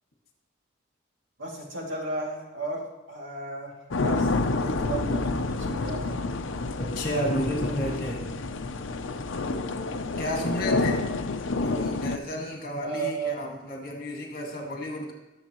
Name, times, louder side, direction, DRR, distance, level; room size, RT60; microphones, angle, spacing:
voice 1, 1.4-6.2 12.8-13.4, right 3 dB, 70° right, -2 dB, 2.5 m, -34 dB
sound 1, 3.9-12.2, left 3 dB, 75° left, 0.6 m, -28 dB
voice 2, 6.8-8.2 10.2-15.1, equal, 45° left, 1 dB, 2.0 m, -32 dB
18.5 x 7.2 x 3.0 m, 1.1 s
head